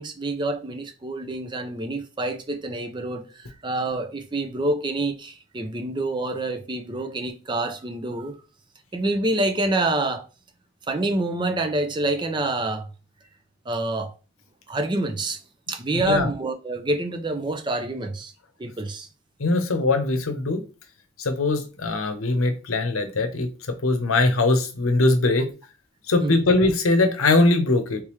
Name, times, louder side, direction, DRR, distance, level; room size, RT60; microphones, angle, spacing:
voice 1, 0.0-8.4 8.9-10.3 10.9-12.9 13.7-14.1 14.7-15.4 15.7-18.3 18.6-19.1 26.2-26.4, right 2 dB, 20° right, 0.4 m, -27 dB
voice 2, 15.9-16.3 19.4-20.6 21.2-23.5 23.8-25.5 26.1-28.0, left 2 dB, 90° left, 0.7 m, -21 dB
3.4 x 3.2 x 3.0 m
head